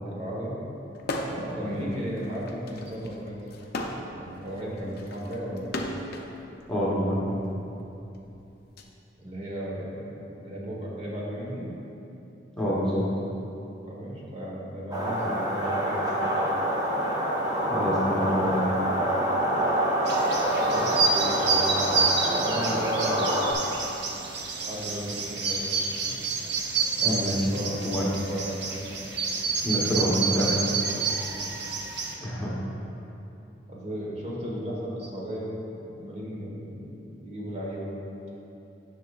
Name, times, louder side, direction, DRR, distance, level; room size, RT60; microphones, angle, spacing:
voice 1, 0.0-0.6 1.4-3.5 4.1-5.7 9.2-11.7 13.9-16.3 18.0-18.8 20.6-22.0 22.4-23.5 24.6-25.6 26.0-26.1 26.9-28.8 33.7-35.5 35.9-38.0, equal, 40° right, -4 dB, 1.3 m, -35 dB
sound 1, 1.0-1.6 1.9-6.3 7.2-8.8, left 1 dB, 60° left, 0.6 m, -35 dB
voice 2, 6.7-7.4 12.6-13.1 17.7-18.6 27.0-27.4 27.8-28.0 29.6-30.6 32.2-32.5, equal, 5° left, -7 dB, 1.1 m, -27 dB
sound 2, 14.9-23.5, right 1 dB, 20° right, 0.9 m, -26 dB
sound 3, 20.1-32.1, right 4 dB, 65° right, 0.7 m, -29 dB
10.0 x 6.7 x 2.4 m, 2.8 s
head